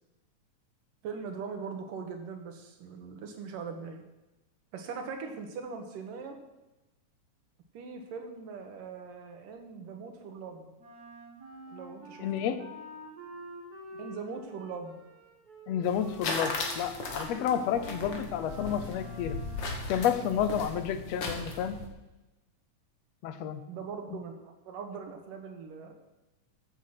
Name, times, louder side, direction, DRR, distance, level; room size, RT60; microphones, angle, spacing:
voice 1, 1.0-4.0 4.7-6.4 7.7-10.7 11.7-12.3 14.0-15.0 17.7-17.9 23.7-25.9, right 5 dB, 85° right, 4 dB, 3.1 m, -41 dB
Wind instrument woodwind instrument, 10.8-19.8, right 1 dB, 30° right, 2.3 m, -47 dB
voice 2, 12.2-12.7 15.7-19.4 19.9-21.8 23.2-23.6, left 9 dB, 70° left, 10 dB, 1.7 m, -30 dB
sound 1, 15.8-21.9, left 3 dB, 45° left, 1.8 m, -37 dB
14.5 x 7.9 x 5.8 m, 1.0 s
omnidirectional pair, 3.7 m